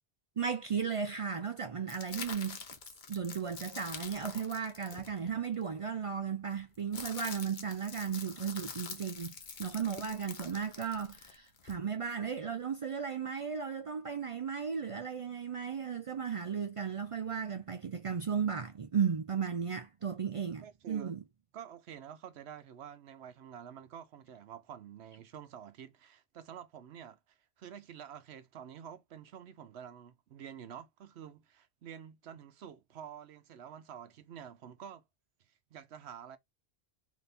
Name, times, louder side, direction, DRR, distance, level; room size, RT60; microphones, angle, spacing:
voice 1, 0.4-2.6 3.1-21.2, right 6 dB, 60° right, 0.3 m, -35 dB
sound 1, 1.9-5.6 6.5-11.8, left 6 dB, 50° left, 0.9 m, -46 dB
voice 2, 20.6-21.2 21.5-35.0 35.4-36.4, right 9 dB, 85° right, 0.9 m, -49 dB
4.1 x 2.8 x 3.4 m
omnidirectional pair, 1.1 m